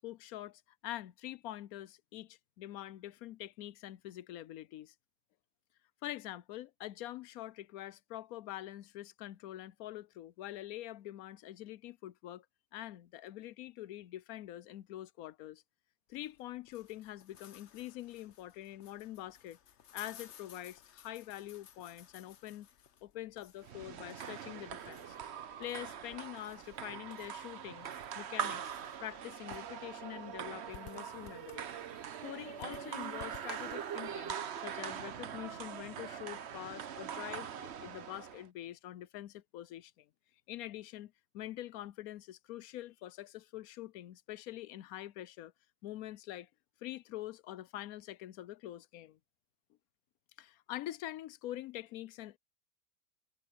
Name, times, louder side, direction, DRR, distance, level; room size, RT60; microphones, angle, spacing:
voice 1, 0.0-4.9 6.0-12.5 12.7-15.6 16.1-19.6 19.9-22.7 23.0-25.2 25.6-27.9 28.1-28.7 29.0-34.4 34.6-40.1 40.5-45.5 45.8-46.5 46.8-49.2 50.4-52.4, left 14 dB, 85° left, 1.1 m, -45 dB
sound 1, 16.1-34.3, left 9 dB, 55° left, 1.1 m, -58 dB
sound 2, 23.6-38.5, right 8 dB, 55° right, 1.0 m, -42 dB
omnidirectional pair, 1.5 m